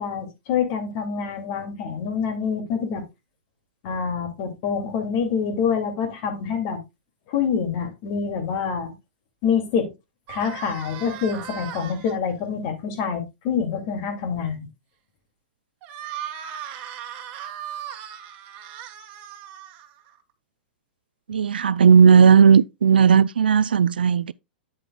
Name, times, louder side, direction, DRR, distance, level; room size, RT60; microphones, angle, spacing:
voice 1, 0.0-3.0 3.8-6.8 7.3-8.9 9.4-9.9 10.3-14.7, left 6 dB, 45° left, 2.4 m, -26 dB
sound 1, 10.3-12.1 15.8-20.2, right 9 dB, 40° right, 1.4 m, -37 dB
voice 2, 21.3-24.3, right 6 dB, 80° right, 0.3 m, -15 dB
9.3 x 7.8 x 2.3 m
hypercardioid pair, 110°, 5 cm